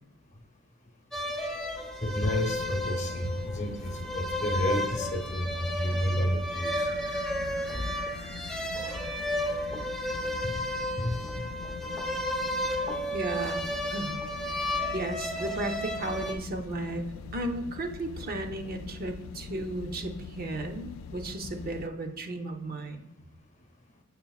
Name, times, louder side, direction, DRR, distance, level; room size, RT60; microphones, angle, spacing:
sound 1, 1.1-16.3, equal, 5° left, 0.5 m, -33 dB
voice 1, 2.0-6.9 10.4-10.7 11.0-11.2, left 1 dB, 35° left, 4 dB, 0.7 m, -30 dB
sound 2, 2.2-21.9, left 5 dB, 65° left, 0.3 m, -43 dB
sound 3, 6.5-11.7, right 1 dB, 65° right, 0.9 m, -48 dB
voice 2, 13.1-14.2 14.9-17.0 17.3-23.1, right 2 dB, 45° right, 5 dB, 0.5 m, -34 dB
6.8 x 6.2 x 2.3 m, 0.92 s
head